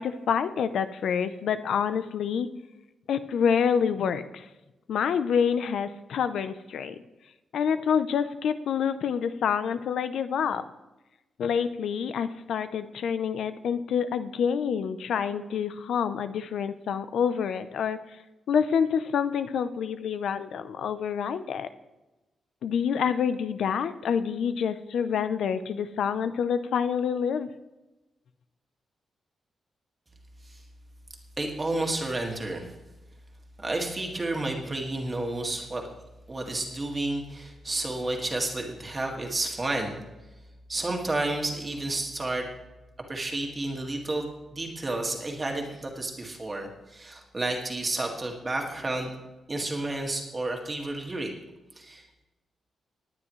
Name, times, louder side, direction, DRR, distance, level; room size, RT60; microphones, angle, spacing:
voice 1, 0.0-2.5 3.1-4.5 4.9-7.0 7.5-10.6 11.4-18.0 18.5-21.7 22.6-27.5, left 7 dB, 75° left, 11 dB, 0.6 m, -27 dB
voice 2, 31.4-32.7 33.6-35.8 36.3-40.0 40.7-42.5 43.1-49.1 49.5-51.3 51.8-52.3, right 2 dB, 20° right, 1 dB, 1.9 m, -31 dB
19.0 x 9.8 x 3.2 m, 1.0 s
wide cardioid pair, 160°, 0 cm